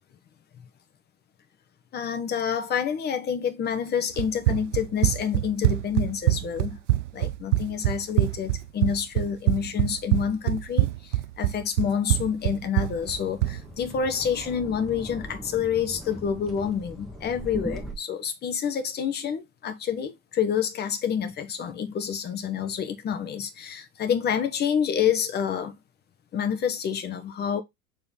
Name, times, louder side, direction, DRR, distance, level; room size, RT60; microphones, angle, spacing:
voice 1, 1.9-6.8 7.1-25.7 26.3-27.6, left 7 dB, 20° left, 1.1 m, -28 dB
Run, 4.2-13.6, right 16 dB, 55° right, 0.6 m, -24 dB
sound 1, 12.9-17.9, equal, ahead, 1.5 m, -40 dB
6.9 x 3.3 x 4.0 m
figure-of-eight pair, 90°, 44 cm